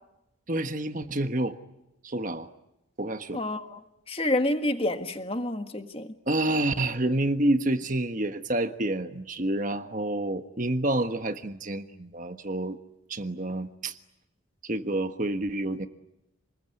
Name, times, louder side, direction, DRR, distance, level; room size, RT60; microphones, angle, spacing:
voice 1, 0.5-1.6 2.0-2.5 3.0-3.4 6.3-12.8 13.1-13.9 14.6-15.9, right 1 dB, 40° right, 8 dB, 1.4 m, -28 dB
voice 2, 3.3-6.1, left 1 dB, 25° left, 7 dB, 1.6 m, -29 dB
28.5 x 21.0 x 9.7 m, 0.89 s
head